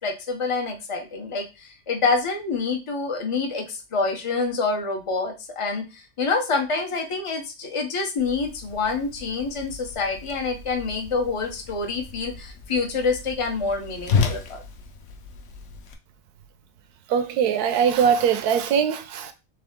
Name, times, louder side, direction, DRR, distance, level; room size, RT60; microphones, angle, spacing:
voice 1, 0.0-14.6, left 4 dB, 45° left, 0.4 m, -27 dB
Whoosh swoosh swish, 8.2-15.9, left 5 dB, 60° left, 0.8 m, -32 dB
voice 2, 17.1-19.3, right 7 dB, 75° right, 1.1 m, -21 dB
3.6 x 3.3 x 3.5 m
omnidirectional pair, 1.7 m